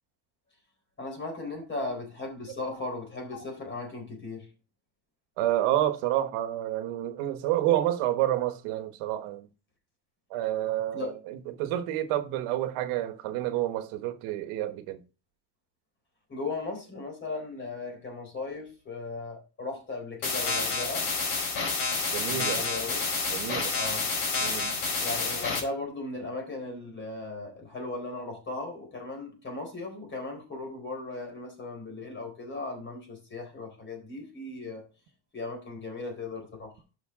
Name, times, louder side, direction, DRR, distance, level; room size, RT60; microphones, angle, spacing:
voice 1, 1.0-4.5 10.9-11.1 16.3-21.1 22.3-23.0 23.7-24.1 25.0-34.8 35.3-36.7, left 3 dB, 25° left, 4.1 m, -37 dB
voice 2, 5.4-9.5 10.3-15.0 22.1-22.6 23.3-23.8 24.4-24.8, right 13 dB, 80° right, 1.4 m, -29 dB
sound 1, 20.2-25.6, left 4 dB, 55° left, 4.8 m, -29 dB
11.5 x 5.9 x 3.7 m
cardioid pair, 160°, 49 cm